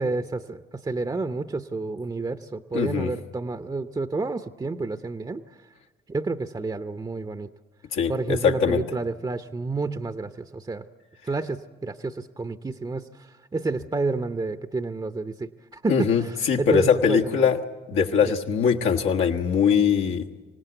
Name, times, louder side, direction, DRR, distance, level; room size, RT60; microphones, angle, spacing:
voice 1, 0.0-5.4 6.1-7.5 8.1-10.8 11.3-17.5 18.2-18.3, right 3 dB, 20° right, 9 dB, 0.8 m, -30 dB
voice 2, 2.7-3.1 7.9-8.8 15.9-17.6 17.9-20.2, left 7 dB, 80° left, 1 dB, 1.6 m, -21 dB
25.5 x 18.0 x 8.0 m, 1.4 s
supercardioid pair, 60°, 21 cm